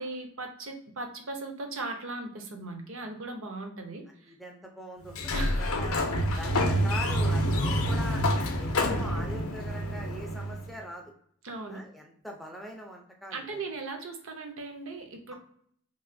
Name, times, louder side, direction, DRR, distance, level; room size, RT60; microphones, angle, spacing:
voice 1, 0.0-4.3 5.3-5.6 6.3-6.4 8.8-9.0 11.4-11.8 13.3-15.4, right 3 dB, 60° right, 4 dB, 0.6 m, -38 dB
voice 2, 4.3-6.0 6.4-8.2 8.6-11.1 11.7-13.6, equal, ahead, 1 dB, 0.4 m, -42 dB
Sliding door, 5.1-10.7, equal, 70° left, 0.5 m, -27 dB
3.0 x 2.9 x 2.5 m, 0.63 s
head